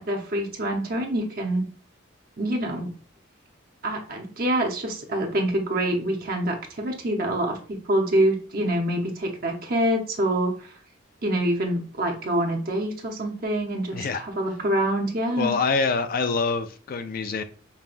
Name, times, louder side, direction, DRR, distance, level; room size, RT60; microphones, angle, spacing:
voice 1, 0.0-1.7 2.4-2.9 3.8-10.7 11.2-15.5, right 1 dB, 45° right, 2 dB, 0.7 m, -26 dB
voice 2, 13.9-14.2 15.4-17.4, left 4 dB, 45° left, 9 dB, 0.3 m, -25 dB
5.3 x 2.2 x 2.4 m, 0.40 s
head